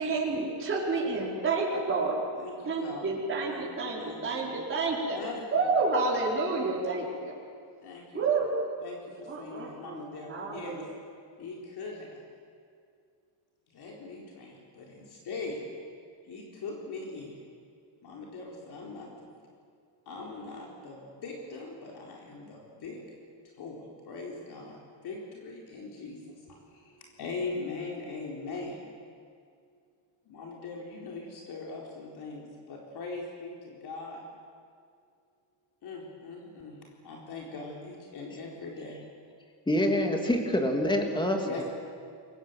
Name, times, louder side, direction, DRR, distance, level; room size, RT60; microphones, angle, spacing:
voice 1, 0.0-2.2 2.6-5.2 5.5-7.3 8.1-8.5 9.3-10.9, right 4 dB, 25° right, -4 dB, 4.7 m, -29 dB
voice 2, 2.4-3.1 3.5-4.4 5.1-5.6 7.8-8.2 8.8-10.8 11.4-12.2 13.7-15.6 16.2-17.4 18.0-19.3 20.1-23.0 23.5-28.8 30.2-34.2 35.8-36.8 37.0-39.0 41.4-41.6, left 3 dB, 55° left, -2 dB, 4.3 m, -41 dB
voice 3, 39.7-41.6, left 1 dB, 10° left, 3 dB, 3.0 m, -26 dB
29.0 x 23.0 x 8.2 m, 2.3 s
cardioid pair, 160°, 46 cm